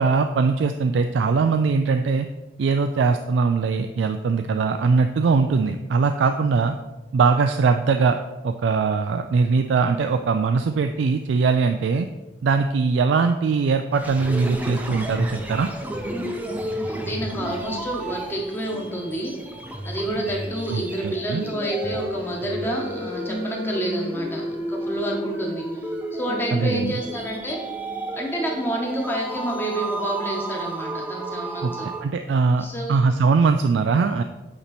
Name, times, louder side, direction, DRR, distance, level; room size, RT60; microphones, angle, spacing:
voice 1, 0.0-2.3 2.6-6.7 7.1-8.2 8.4-12.1 12.4-15.7 20.7-21.4 26.5-27.0 31.6-31.7 32.0-34.2, right 4 dB, 70° right, 7 dB, 0.3 m, -21 dB
sound 1, 13.9-32.0, right 1 dB, 10° right, 0.5 m, -31 dB
voice 2, 16.9-19.3 19.8-27.6 28.1-31.9 32.6-33.0, right 1 dB, 10° left, -1 dB, 1.0 m, -29 dB
8.4 x 3.0 x 4.1 m, 1.1 s
head